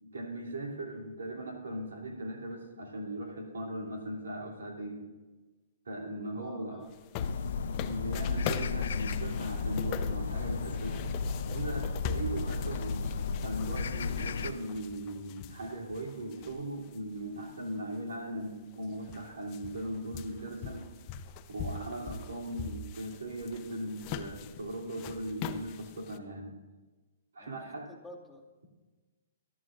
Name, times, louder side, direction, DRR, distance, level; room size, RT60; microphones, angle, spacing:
voice 1, 0.0-5.1 5.8-6.8 7.8-11.1 11.5-13.0 13.4-20.9 21.5-26.5 27.3-27.9, right 1 dB, 80° right, 0 dB, 2.9 m, -39 dB
voice 2, 6.4-6.9 21.9-22.4 27.4-28.6, left 1 dB, ahead, -4 dB, 2.2 m, -53 dB
sound 1, 6.9-17.0 17.4-17.5 18.4-18.5 18.7-26.2, left 7 dB, 35° left, 0.7 m, -42 dB
sound 2, 7.2-14.5, left 5 dB, 70° left, 0.6 m, -33 dB
23.5 x 12.0 x 2.6 m, 1.3 s
hypercardioid pair, 130°, 0 cm